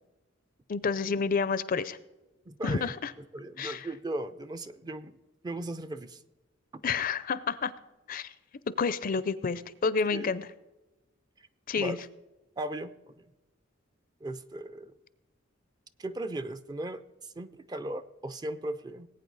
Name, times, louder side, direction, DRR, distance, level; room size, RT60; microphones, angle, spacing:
voice 1, 0.7-2.0 2.6-3.1 3.6-3.9 6.8-7.7 8.1-8.3 8.8-10.5 11.7-12.0, left 5 dB, 45° left, 17 dB, 0.5 m, -29 dB
voice 2, 2.5-2.9 3.3-5.1 5.4-6.2 6.7-6.8 10.0-10.3 11.8-12.0 12.6-13.2 14.2-14.9 16.0-17.0 17.4-19.1, right 1 dB, 20° right, 11 dB, 0.5 m, -37 dB
19.5 x 8.8 x 4.0 m, 1.1 s
head